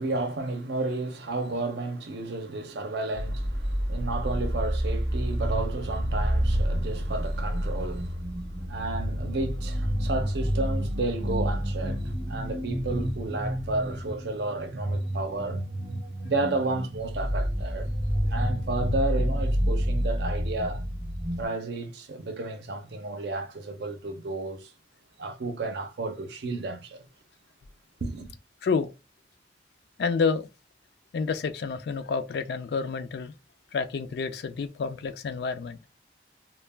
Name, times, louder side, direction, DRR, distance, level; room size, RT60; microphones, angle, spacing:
voice 1, 0.0-15.6 16.2-17.9 18.3-20.8 21.4-24.7 25.2-27.1 28.0-28.3, right 2 dB, 65° right, 0.5 m, -32 dB
sound 1, 3.1-21.4, equal, 25° right, 0.8 m, -29 dB
voice 2, 30.0-30.5 31.1-33.3 33.7-35.8, left 5 dB, 65° left, 0.3 m, -29 dB
2.2 x 2.1 x 3.2 m
head